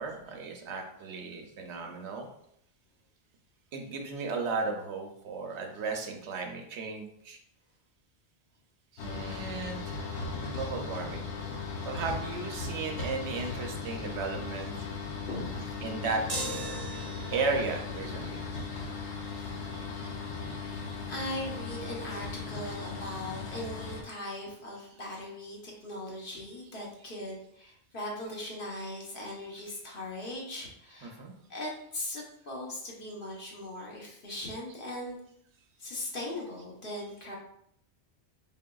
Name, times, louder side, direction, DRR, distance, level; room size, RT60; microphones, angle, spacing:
voice 1, 0.0-2.3 3.7-7.4 8.9-10.2 10.5-14.7 15.8-16.2 17.3-18.4 19.7-20.1 20.4-20.5 22.1-22.2 22.7-23.2 24.1-24.2 24.8-25.1 27.0-27.1 29.3-29.5 31.0-31.3 37.0-37.1, right 4 dB, 80° right, 3 dB, 1.0 m, -36 dB
sound 1, 9.0-24.0, left 4 dB, 75° left, 0.9 m, -37 dB
voice 2, 15.2-15.8 16.7-16.8 19.4-19.6 21.1-35.2 35.8-37.4, left 1 dB, 55° left, -2 dB, 1.1 m, -39 dB
sound 2, 16.3-17.6, right 2 dB, 25° right, 0.8 m, -37 dB
3.9 x 3.5 x 2.2 m, 0.72 s
omnidirectional pair, 1.1 m